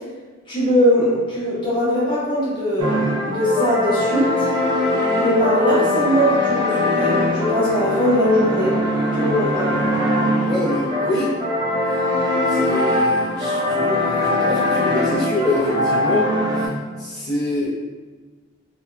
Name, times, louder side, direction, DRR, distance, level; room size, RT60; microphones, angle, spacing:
voice 1, 0.5-4.5 5.2-8.8 9.1-9.8, equal, 25° left, -10 dB, 1.0 m, -20 dB
sound 1, 2.8-16.7, left 1 dB, 20° right, 0.4 m, -21 dB
voice 2, 10.4-11.3 12.5-16.7 17.0-17.8, left 1 dB, 55° left, -11 dB, 0.6 m, -25 dB
2.7 x 2.3 x 2.3 m, 1.3 s
head